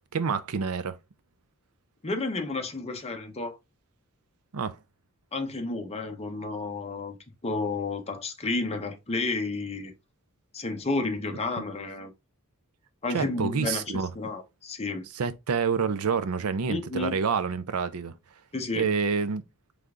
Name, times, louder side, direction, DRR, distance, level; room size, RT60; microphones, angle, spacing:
voice 1, 0.1-1.0 4.5-4.8 13.1-14.1 15.1-18.1 18.7-19.4, right 5 dB, 80° right, 0.5 m, -27 dB
voice 2, 2.0-3.6 5.3-7.2 7.4-9.9 10.5-12.1 13.0-13.8 14.1-15.0 16.7-17.1 18.5-18.9, left 3 dB, 30° left, 0.8 m, -31 dB
3.7 x 3.4 x 3.6 m
head